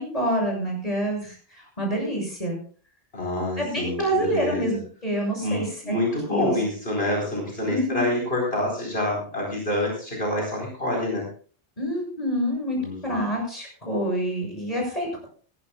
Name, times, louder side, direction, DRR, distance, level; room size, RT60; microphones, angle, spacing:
voice 1, 0.0-2.6 3.6-5.9 6.3-6.6 7.6-8.0 11.8-12.8 13.0-15.3, right 1 dB, 40° left, 0 dB, 7.2 m, -27 dB
voice 2, 3.1-4.6 5.4-11.3 12.7-13.3, left 1 dB, 70° left, -2 dB, 4.8 m, -27 dB
20.0 x 15.0 x 2.4 m, 0.41 s
omnidirectional pair, 1.0 m